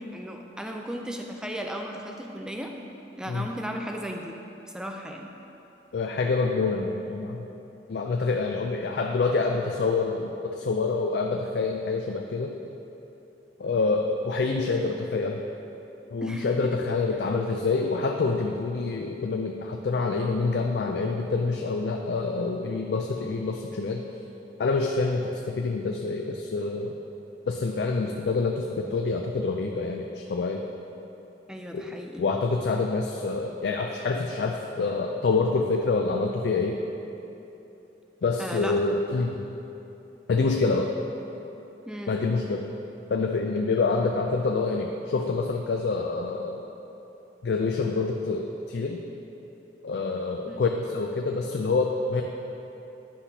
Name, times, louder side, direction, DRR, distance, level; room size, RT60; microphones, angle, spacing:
voice 1, 0.0-2.7 3.2-4.4 4.7-5.3 16.2-16.5 31.5-32.3 38.4-38.8 41.9-42.2 50.5-50.6, equal, 5° right, 2 dB, 0.4 m, -35 dB
voice 2, 5.9-7.5 7.9-12.6 13.6-15.4 16.1-24.0 24.6-26.9 27.5-30.6 31.7-31.8 32.2-36.8 38.2-39.5 40.3-40.9 42.1-42.7 43.1-46.6 47.4-49.0 49.8-52.2, left 3 dB, 65° left, 2 dB, 0.4 m, -27 dB
9.9 x 5.9 x 2.8 m, 3.0 s
head